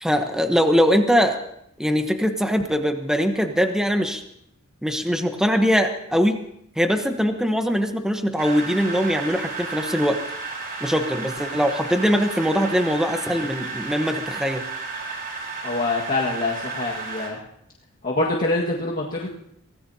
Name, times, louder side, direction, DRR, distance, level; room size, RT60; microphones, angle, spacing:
voice 1, 0.0-1.4 1.8-4.2 4.8-6.4 6.8-10.2 10.8-14.6, equal, 5° right, 5 dB, 1.0 m, -22 dB
sound 1, 8.4-17.3, right 4 dB, 45° right, 4.2 m, -33 dB
voice 2, 15.6-17.4 18.0-19.3, left 2 dB, 40° left, -4 dB, 1.8 m, -25 dB
24.5 x 17.5 x 2.8 m, 0.73 s
head